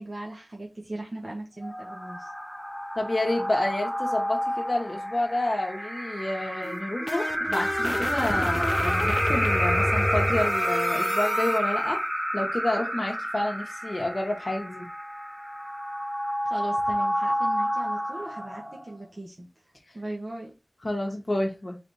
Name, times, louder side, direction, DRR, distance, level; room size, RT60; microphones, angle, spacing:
voice 1, 0.0-2.3 16.4-20.5, right 2 dB, 50° right, 1.3 m, -38 dB
sound 1, 1.6-19.0, equal, 5° right, 1.5 m, -29 dB
voice 2, 3.0-12.0 12.3-14.9 20.8-21.8, left 1 dB, 45° left, 1.0 m, -29 dB
sound 2, 6.6-11.6, left 1 dB, 30° left, 0.5 m, -29 dB
4.0 x 3.3 x 4.0 m
wide cardioid pair, 60°, 0 cm